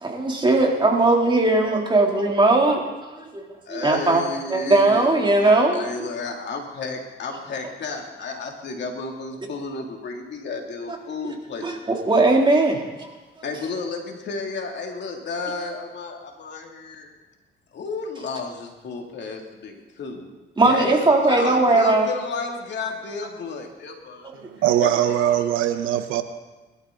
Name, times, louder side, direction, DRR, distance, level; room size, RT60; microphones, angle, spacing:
voice 1, 0.0-2.8 3.3-3.4 3.7-4.2 4.5-5.9 11.6-12.8 20.6-22.0, right 2 dB, 25° right, 3.1 m, -18 dB
voice 2, 3.7-5.3 5.7-11.7 13.4-17.1 17.7-20.3 20.6-24.3 24.8-25.5, left 4 dB, 60° left, 2.8 m, -32 dB
voice 3, 24.3-26.2, right 11 dB, 90° right, 1.0 m, -21 dB
21.5 x 12.5 x 3.9 m
cardioid pair, 90°, 20 cm